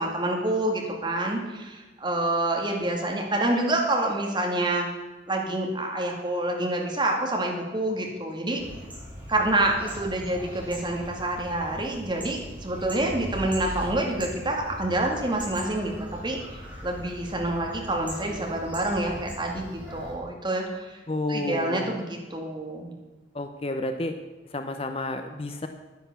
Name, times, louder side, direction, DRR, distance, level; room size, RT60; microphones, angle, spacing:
voice 1, 0.0-4.9 5.3-8.6 9.3-15.9 16.2-21.0 21.3-22.9, right 1 dB, 25° right, 0 dB, 2.2 m, -27 dB
sound 1, 8.6-20.1, equal, 10° right, 4.2 m, -39 dB
voice 2, 21.1-22.0 23.3-24.1 24.5-25.7, left 2 dB, 30° left, 7 dB, 0.8 m, -30 dB
11.0 x 10.0 x 7.0 m, 1.2 s
head